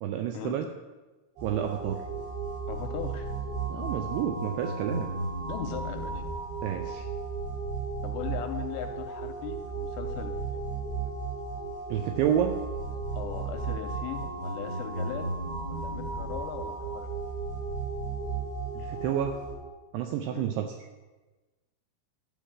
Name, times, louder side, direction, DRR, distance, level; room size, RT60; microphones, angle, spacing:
voice 1, 0.0-0.7 1.4-2.0 3.7-5.1 6.6-7.1 11.9-12.6 18.7-19.4 19.9-20.7, right 9 dB, 85° right, 5 dB, 2.4 m, -29 dB
sound 1, 1.4-19.5, right 4 dB, 60° right, 5.8 m, -34 dB
voice 2, 2.7-3.3 5.5-6.2 8.0-10.7 13.1-15.3 15.7-17.2 20.3-20.5, left 10 dB, 85° left, 5 dB, 2.7 m, -39 dB
12.0 x 4.9 x 7.4 m, 1.2 s
omnidirectional pair, 5.4 m